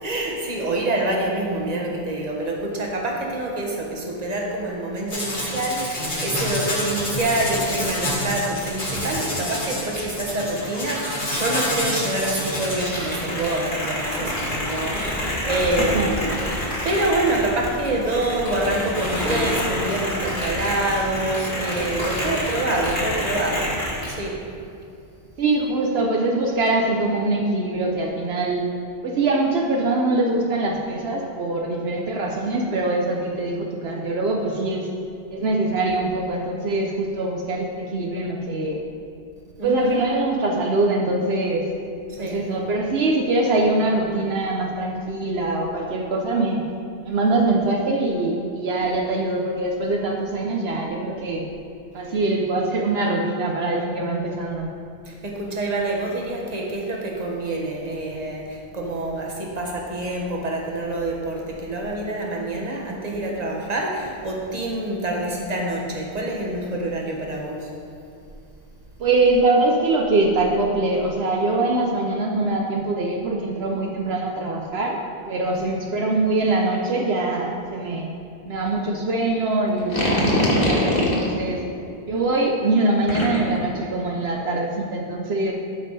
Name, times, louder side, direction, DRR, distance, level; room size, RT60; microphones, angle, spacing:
voice 1, 0.0-23.8 24.1-24.5 39.6-40.0 42.1-42.5 55.0-67.7 75.5-75.6, right 2 dB, 40° right, -1 dB, 1.3 m, -26 dB
sound 1, 5.1-24.1, left 1 dB, 65° left, 2.4 m, -28 dB
voice 2, 15.8-16.1 25.4-28.7 29.0-34.9 35.3-38.8 39.6-41.7 42.2-46.6 47.0-51.4 51.9-54.7 69.0-75.0 75.3-78.1 78.4-81.6 82.0-85.5, right 2 dB, 75° right, 0 dB, 1.0 m, -23 dB
sound 2, 79.8-81.3 83.1-83.6, left 1 dB, 40° left, 1.7 m, -21 dB
12.5 x 5.5 x 4.1 m, 2.6 s
omnidirectional pair, 1.1 m